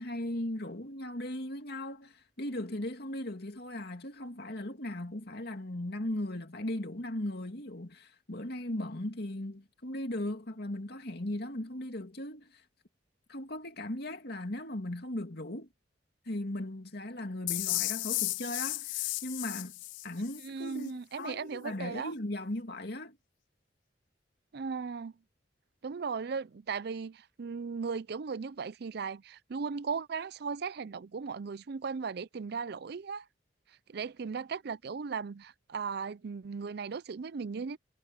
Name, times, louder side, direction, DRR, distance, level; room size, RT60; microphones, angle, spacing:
voice 1, 0.0-12.6 13.3-15.7 16.3-23.2, left 1 dB, 60° left, 2.6 m, -38 dB
sound 1, 17.5-20.5, left 20 dB, 80° left, 0.3 m, -34 dB
voice 2, 20.4-22.1 24.5-25.1 25.8-33.3 33.9-37.8, right 5 dB, 60° right, 0.5 m, -37 dB
head